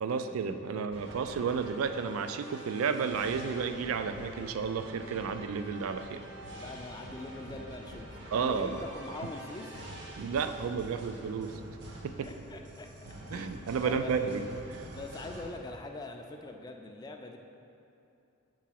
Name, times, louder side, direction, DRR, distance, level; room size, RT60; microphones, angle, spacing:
voice 1, 0.0-6.2 8.3-8.7 10.2-11.6 12.0-12.3 13.3-14.4 14.8-14.9, right 6 dB, 85° right, 9 dB, 0.3 m, -32 dB
sound 1, 0.9-15.5, right 1 dB, 55° right, 0.8 m, -46 dB
voice 2, 6.6-8.1 8.3-9.8 12.2-14.3 14.9-17.4, left 2 dB, 20° left, 3 dB, 0.4 m, -43 dB
4.7 x 4.6 x 5.8 m, 2.7 s
head